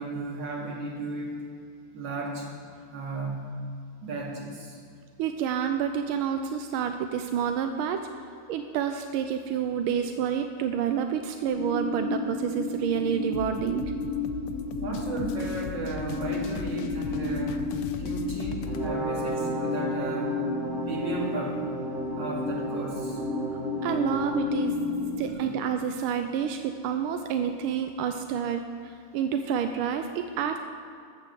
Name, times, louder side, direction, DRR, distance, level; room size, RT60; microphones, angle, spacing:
voice 1, 0.0-1.4 1.9-2.5 2.9-3.5 4.0-4.8 14.8-17.6 18.0-20.4 20.7-21.6 22.1-23.2 25.1-25.6, right 2 dB, 60° right, -2 dB, 2.9 m, -35 dB
voice 2, 5.2-8.0 8.5-13.8 23.5-24.8 25.2-30.6, right 8 dB, 90° right, 6 dB, 1.5 m, -29 dB
sound 1, 11.4-25.3, left 3 dB, 40° right, 2.6 m, -32 dB
sound 2, 13.3-18.9, left 8 dB, 85° left, 1.6 m, -38 dB
Brass instrument, 18.6-24.5, right 2 dB, 30° left, 3.0 m, -34 dB
14.5 x 7.7 x 6.8 m, 2.4 s
omnidirectional pair, 2.3 m